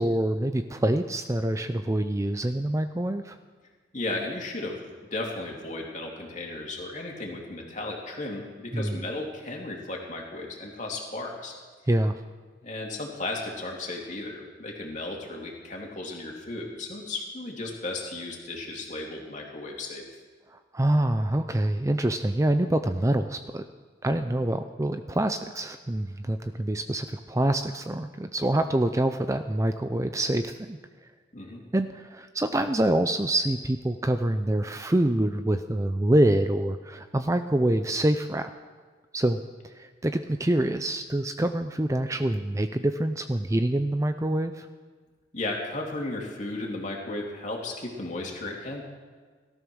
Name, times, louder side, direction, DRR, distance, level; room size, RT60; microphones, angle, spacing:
voice 1, 0.0-3.4 8.7-9.0 11.9-12.2 20.7-23.6 24.0-30.8 31.7-38.5 39.1-39.4 39.6-44.7, right 1 dB, 15° right, 8 dB, 0.5 m, -26 dB
voice 2, 3.9-11.5 12.6-20.0 31.3-31.6 45.3-48.8, left 2 dB, 40° left, -1 dB, 2.9 m, -35 dB
18.0 x 12.5 x 6.3 m, 1.5 s
head